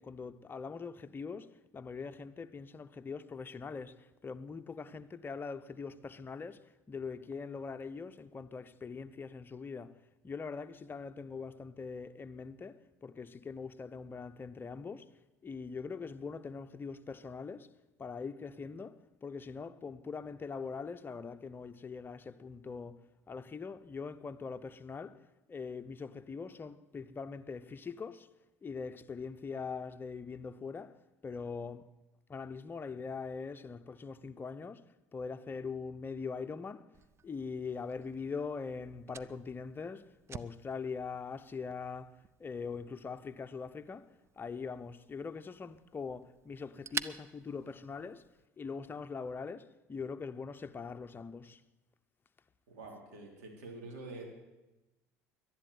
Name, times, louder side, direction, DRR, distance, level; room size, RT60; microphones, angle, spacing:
voice 1, 0.0-15.1 15.4-17.7 18.0-25.2 25.5-28.3 28.6-31.0 31.2-31.9 32.3-34.8 35.1-36.9 37.2-44.1 44.4-48.2 48.6-51.6, left 5 dB, 25° left, 0.8 m, -42 dB
Fire, 36.9-48.5, right 6 dB, 30° right, 0.6 m, -49 dB
voice 2, 52.7-54.2, right 2 dB, 80° right, 3.4 m, -46 dB
11.0 x 11.0 x 9.4 m
hypercardioid pair, 80°, 8 cm